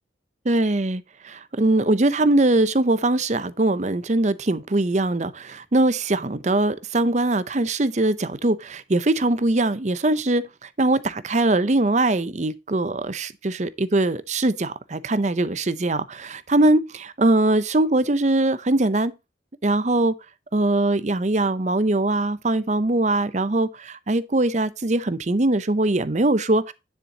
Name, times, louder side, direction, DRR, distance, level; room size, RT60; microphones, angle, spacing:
voice 1, 0.4-19.1 19.6-20.1 20.5-26.7, right 2 dB, 40° right, 0.7 m, -22 dB
9.8 x 7.1 x 2.9 m
head